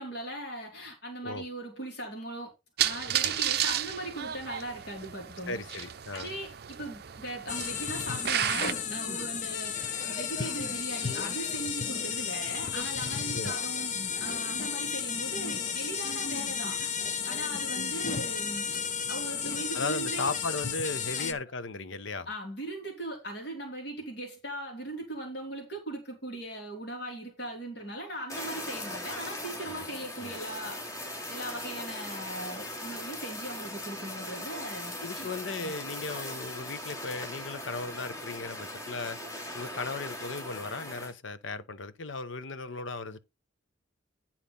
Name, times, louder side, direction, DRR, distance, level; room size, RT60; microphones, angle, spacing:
voice 1, 0.0-2.5 2.8-5.8 6.1-9.7 10.0-16.9 17.2-18.8 19.1-20.3 21.2-21.4 22.3-30.8 31.3-35.3 35.6-35.7, right 1 dB, 55° left, 3.1 m, -39 dB
sound 1, 2.8-8.7, right 11 dB, 50° right, 0.5 m, -32 dB
voice 2, 5.5-6.3 13.3-13.5 19.7-22.3 29.7-29.9 30.2-30.4 35.0-39.2 39.5-43.2, left 3 dB, 70° left, 0.9 m, -36 dB
sound 2, 7.5-21.3, left 6 dB, 40° left, 0.8 m, -33 dB
Fire, 28.3-41.1, left 1 dB, 15° left, 2.6 m, -39 dB
10.5 x 4.3 x 5.5 m
head